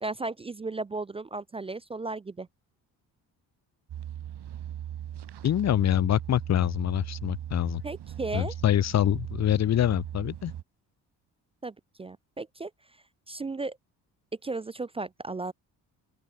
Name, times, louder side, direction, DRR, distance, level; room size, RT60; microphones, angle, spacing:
voice 1, 0.0-2.5 7.8-8.5 11.6-12.7 13.3-13.8 14.4-15.5, right 3 dB, 15° right, 0.3 m, -35 dB
sound 1, 3.9-10.6, right 11 dB, 55° right, 2.6 m, -38 dB
voice 2, 5.4-7.8 8.3-10.5, left 11 dB, 35° left, 0.6 m, -25 dB
open air
hypercardioid pair, 50°, 49 cm